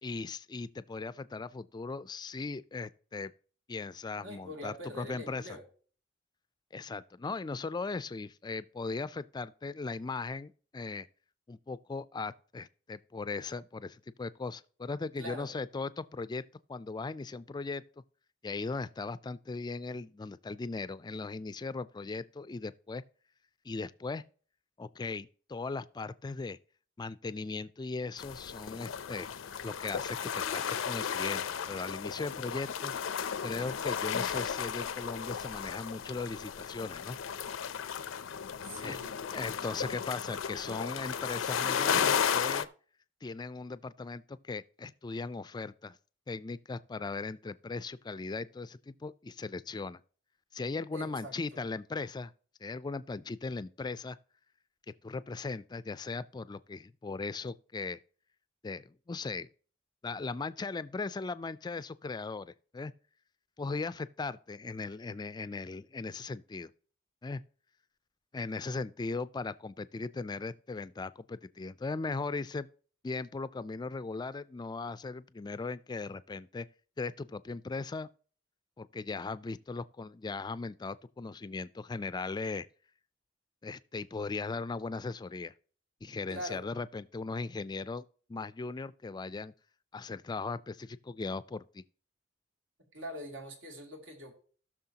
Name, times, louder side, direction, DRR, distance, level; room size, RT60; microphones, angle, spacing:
voice 1, 0.0-3.3 3.7-5.4 6.7-11.1 11.5-16.4 16.7-17.8 18.4-23.0 23.6-24.2 24.8-26.6 27.0-29.3 29.6-33.0 33.4-37.2 38.8-39.0 39.3-42.7 43.2-46.0 46.3-50.0 50.5-52.3 52.6-54.2 55.0-58.0 58.6-59.5 60.0-62.9 63.6-66.7 67.2-67.4 68.3-72.7 73.0-76.7 77.0-78.1 78.8-82.7 83.6-85.5 86.0-88.0 88.3-89.5 89.9-91.8, left 3 dB, 20° left, 0.3 m, -38 dB
voice 2, 4.2-5.6 15.2-15.5 38.6-39.1 50.9-51.6 86.3-86.7 92.9-94.3, equal, 85° right, 2.6 m, -43 dB
sound 1, 28.2-42.7, left 7 dB, 85° left, 0.5 m, -34 dB
17.0 x 6.3 x 2.9 m
head